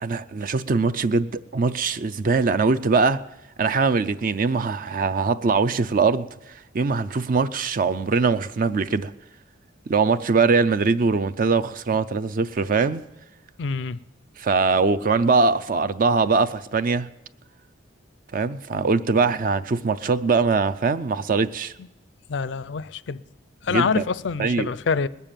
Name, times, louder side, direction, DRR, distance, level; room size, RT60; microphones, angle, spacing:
voice 1, 0.0-3.2 3.6-9.1 9.9-13.0 14.4-17.1 18.3-21.7 23.7-24.0 24.4-24.7, right 4 dB, 45° right, 0.4 m, -22 dB
voice 2, 13.6-14.0 21.8-21.9 22.3-23.2 23.6-25.1, left 5 dB, 65° left, 0.4 m, -26 dB
20.0 x 6.9 x 9.0 m
head